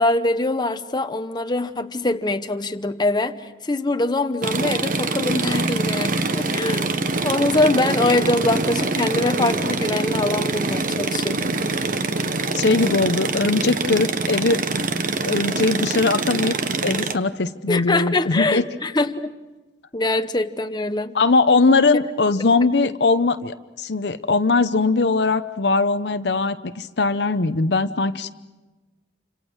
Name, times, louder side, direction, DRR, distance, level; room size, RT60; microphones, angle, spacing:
voice 1, 0.0-11.6 17.7-19.3 19.9-21.1 22.8-22.9, left 2 dB, 25° left, 8 dB, 0.9 m, -23 dB
sound 1, 4.4-17.1, right 3 dB, 50° right, 1.1 m, -24 dB
voice 2, 12.5-14.6 15.2-16.6 16.8-18.6 21.1-28.3, left 3 dB, 65° left, 10 dB, 0.8 m, -20 dB
28.5 x 26.0 x 6.4 m, 1.2 s
head